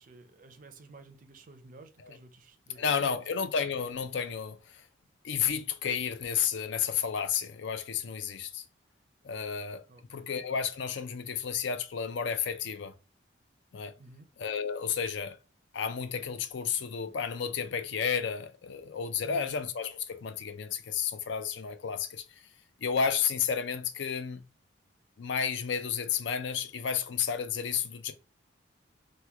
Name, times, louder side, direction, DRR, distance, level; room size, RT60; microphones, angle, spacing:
voice 1, 0.0-3.3 9.9-10.3 14.0-14.3 19.2-19.6, right 2 dB, 40° right, 0.4 m, -52 dB
voice 2, 2.8-4.8 5.2-8.6 9.2-9.8 10.1-12.9 13.7-13.9 14.4-15.4 15.7-22.2 22.8-24.4 25.2-28.1, left 7 dB, 65° left, 0.4 m, -32 dB
3.0 x 2.2 x 3.3 m
head